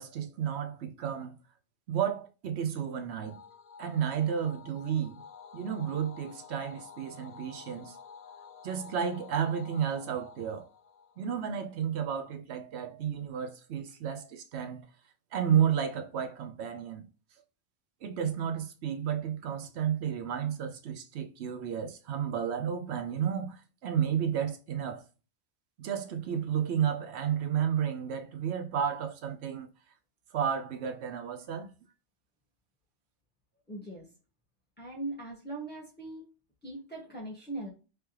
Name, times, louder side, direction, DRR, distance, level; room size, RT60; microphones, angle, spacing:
voice 1, 0.0-1.4 1.9-3.4 3.8-5.2 5.5-8.0 8.6-10.7 11.2-14.8 15.3-17.0 18.0-25.0 25.8-29.7 30.3-31.7, right 8 dB, 65° right, 0.9 m, -32 dB
sound 1, 3.2-11.8, left 6 dB, 55° left, 0.5 m, -51 dB
voice 2, 33.7-34.1 34.8-36.2 36.6-37.7, right 2 dB, 10° left, 1.3 m, -40 dB
3.4 x 3.2 x 2.9 m
omnidirectional pair, 1.2 m